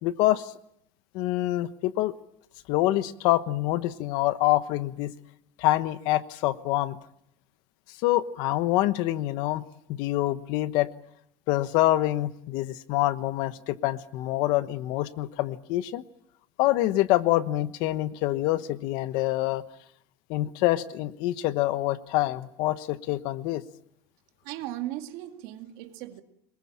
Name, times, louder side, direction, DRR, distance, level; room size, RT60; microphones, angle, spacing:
voice 1, 0.0-0.5 1.1-2.1 2.7-5.1 5.6-7.0 8.0-9.6 9.9-10.9 11.5-16.0 16.6-19.6 20.3-23.6, left 16 dB, 60° left, 1.1 m, -26 dB
voice 2, 24.4-26.2, right 14 dB, 65° right, 2.1 m, -37 dB
23.0 x 21.0 x 8.7 m
cardioid pair, 175°, 8 cm